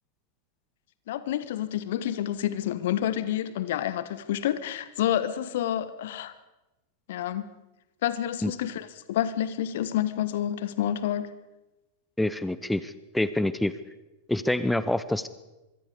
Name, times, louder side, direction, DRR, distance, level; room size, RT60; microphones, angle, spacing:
voice 1, 1.1-6.3 7.1-7.5 8.0-11.3, left 11 dB, 55° left, 14 dB, 1.4 m, -29 dB
voice 2, 12.2-13.7 14.3-15.3, left 1 dB, 5° left, 15 dB, 0.8 m, -26 dB
24.5 x 23.0 x 5.0 m, 1.0 s
figure-of-eight pair, 90°, 0 cm